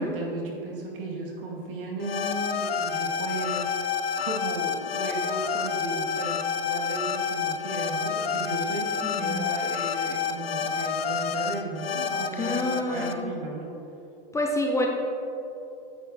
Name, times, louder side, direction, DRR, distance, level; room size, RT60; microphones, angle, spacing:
voice 1, 0.0-13.7, right 3 dB, 65° right, -1 dB, 2.0 m, -35 dB
sound 1, 2.0-13.1, left 6 dB, 90° left, 0.6 m, -29 dB
voice 2, 9.0-9.6 12.4-13.3 14.3-14.9, left 1 dB, 10° left, 1 dB, 0.6 m, -28 dB
9.8 x 9.1 x 2.8 m, 2.9 s
hypercardioid pair, 115°, 30 cm